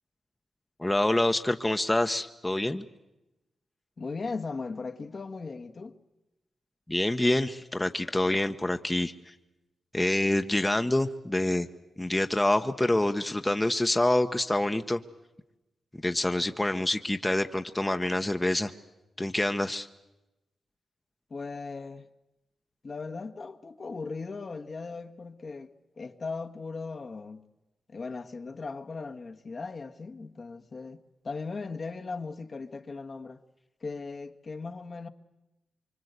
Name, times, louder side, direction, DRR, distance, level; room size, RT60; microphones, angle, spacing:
voice 1, 0.8-2.8 6.9-9.3 9.9-11.7 12.0-15.0 15.9-18.7 19.2-19.9, left 1 dB, 15° left, 1.0 m, -26 dB
voice 2, 4.0-6.0 21.3-22.1 22.8-27.5 27.9-33.4 33.8-35.1, left 4 dB, 50° left, 1.3 m, -38 dB
24.5 x 24.5 x 8.1 m
cardioid pair, 65°, 0 cm